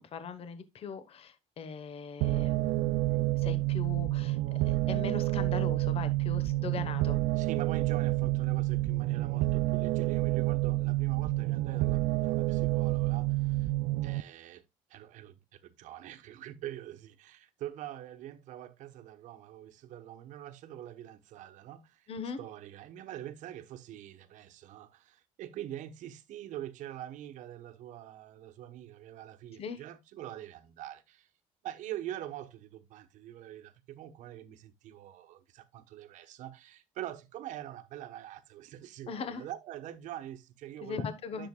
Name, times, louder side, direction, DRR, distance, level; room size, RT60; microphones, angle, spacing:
voice 1, 0.0-4.4 4.7-7.2 22.1-22.4 29.6-29.8 39.1-39.4 40.8-41.5, left 6 dB, 50° left, 1.1 m, -40 dB
sound 1, 2.2-14.2, right 19 dB, 90° right, 0.4 m, -29 dB
voice 2, 7.4-13.7 14.0-14.6 14.9-22.1 22.4-31.3 31.6-41.0 41.3-41.5, right 12 dB, 70° right, 1.1 m, -44 dB
10.5 x 7.1 x 2.3 m
cardioid pair, 115°, 13 cm